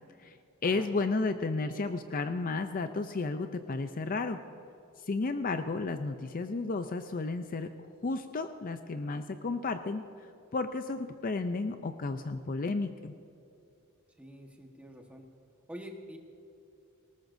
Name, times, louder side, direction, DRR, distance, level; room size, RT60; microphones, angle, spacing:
voice 1, 0.6-4.4 5.1-7.7 8.0-10.0 10.5-13.1, left 3 dB, 40° left, 9 dB, 0.5 m, -32 dB
voice 2, 14.2-15.3 15.7-16.2, equal, 5° right, 2 dB, 1.3 m, -46 dB
19.5 x 18.5 x 2.7 m, 2.8 s
head